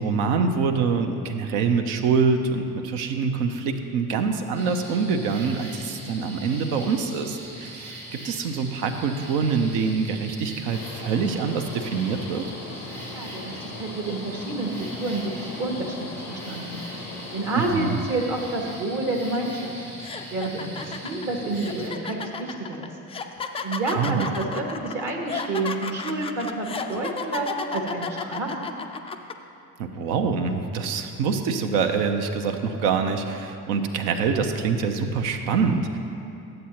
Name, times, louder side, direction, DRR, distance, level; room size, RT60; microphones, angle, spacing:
voice 1, 0.0-12.4 17.6-18.0 23.9-24.3 29.8-36.0, right 5 dB, 65° right, 5 dB, 0.8 m, -25 dB
sound 1, 4.5-21.9, right 1 dB, 90° right, 1.4 m, -41 dB
sound 2, 10.7-17.6, left 3 dB, 75° left, 0.8 m, -40 dB
voice 2, 13.1-19.7 20.3-22.9 23.6-28.7, right 2 dB, 40° right, 1 dB, 1.1 m, -29 dB
sound 3, 19.3-19.5 20.0-29.3, left 5 dB, 15° left, 0.3 m, -33 dB
12.0 x 7.6 x 2.9 m, 2.7 s
figure-of-eight pair, 50°, 45 cm